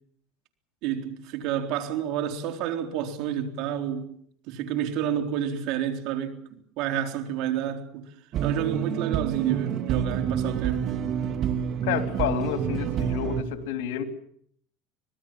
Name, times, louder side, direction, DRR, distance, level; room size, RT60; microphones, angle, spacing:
voice 1, 0.8-4.1 4.5-8.1 8.4-10.9, right 10 dB, 65° right, 3.8 m, -29 dB
sound 1, 8.3-13.4, right 8 dB, 50° right, 2.5 m, -28 dB
voice 2, 11.8-14.0, left 9 dB, 80° left, 3.2 m, -29 dB
25.5 x 20.0 x 7.5 m
supercardioid pair, 110°, 0 cm